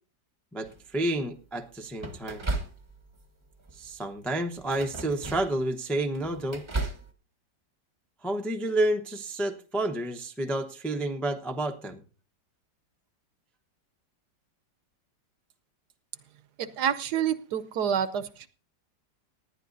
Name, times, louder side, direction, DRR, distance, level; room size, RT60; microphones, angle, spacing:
voice 1, 0.5-2.4 3.7-6.6 8.2-12.0, right 1 dB, ahead, 4 dB, 0.4 m, -30 dB
sound 1, 0.6-1.1 2.0-3.2 3.6-3.9 4.6-5.6 6.0-7.1, right 2 dB, 25° right, 0.7 m, -35 dB
voice 2, 16.6-18.5, right 8 dB, 70° right, 14 dB, 1.2 m, -28 dB
19.0 x 10.5 x 2.6 m, 0.36 s
omnidirectional pair, 2.0 m